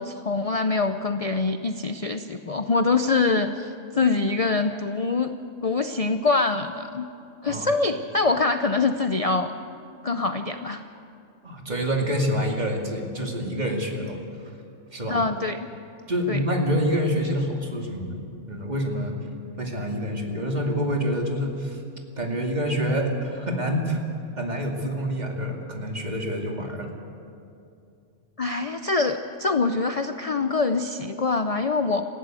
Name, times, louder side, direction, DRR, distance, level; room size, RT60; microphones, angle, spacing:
voice 1, 0.0-5.4 5.6-7.1 7.4-9.5 10.0-10.8 15.1-15.7 16.3-16.4 28.4-32.0, left 3 dB, 40° left, 8 dB, 0.5 m, -24 dB
voice 2, 11.4-14.2 14.9-15.2 16.1-18.2 18.5-19.2 19.6-21.8 22.1-24.0 24.4-26.9, equal, 35° right, 1 dB, 2.6 m, -27 dB
19.5 x 15.0 x 9.0 m, 2.6 s
omnidirectional pair, 1.4 m